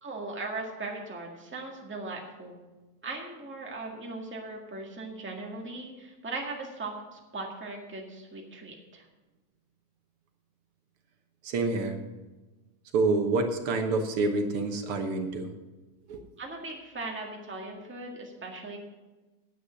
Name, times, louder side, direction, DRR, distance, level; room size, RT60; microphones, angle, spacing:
voice 1, 0.0-2.6 3.0-9.0 16.4-18.8, right 3 dB, 5° right, 0 dB, 1.0 m, -39 dB
voice 2, 11.4-12.0 12.9-15.5 16.1-16.2, right 3 dB, 60° right, 5 dB, 1.7 m, -27 dB
9.8 x 9.2 x 6.3 m, 1.2 s
omnidirectional pair, 3.3 m